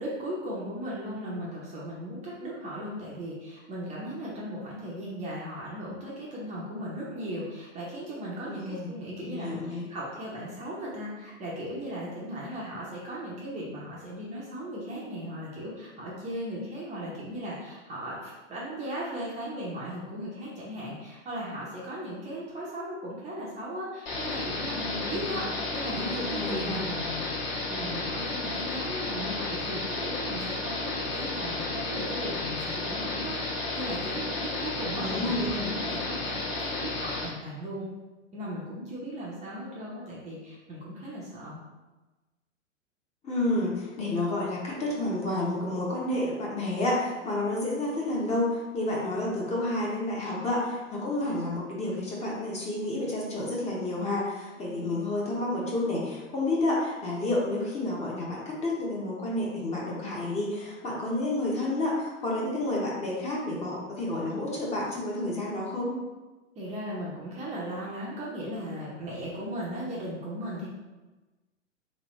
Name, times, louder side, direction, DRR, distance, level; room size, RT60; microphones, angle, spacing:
voice 1, 0.0-27.4 27.7-37.9 38.3-41.6 54.6-54.8 66.6-70.7, equal, 20° right, -6 dB, 0.6 m, -37 dB
voice 2, 8.5-8.9 9.2-9.9 25.3-25.6 25.8-26.9 35.0-35.8 43.2-65.9, left 1 dB, 20° left, -4 dB, 0.8 m, -30 dB
sound 1, 24.1-37.3, left 3 dB, 50° left, 1.3 m, -32 dB
3.3 x 3.2 x 3.0 m, 1.2 s
hypercardioid pair, 110°, 38 cm